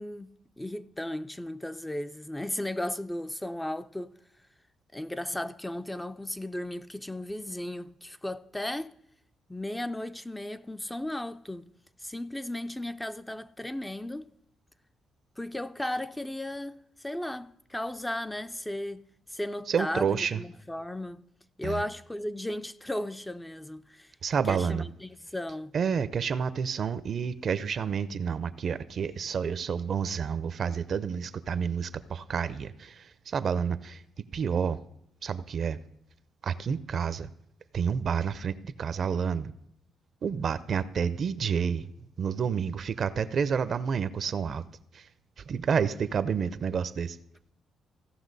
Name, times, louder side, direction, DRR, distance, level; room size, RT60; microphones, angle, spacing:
voice 1, 0.0-4.1 4.9-8.9 9.5-11.7 12.0-14.3 15.4-19.0 19.3-21.2 21.6-24.1 24.5-25.7, left 1 dB, 10° left, 0.4 m, -35 dB
voice 2, 19.7-20.4 21.6-21.8 24.2-24.9 25.7-34.8 35.2-35.8 36.4-37.3 37.7-39.5 40.2-44.6 44.9-45.1 45.4-47.2, right 6 dB, 55° right, 0.5 m, -29 dB
16.0 x 5.8 x 4.0 m
cardioid pair, 90°, 0 cm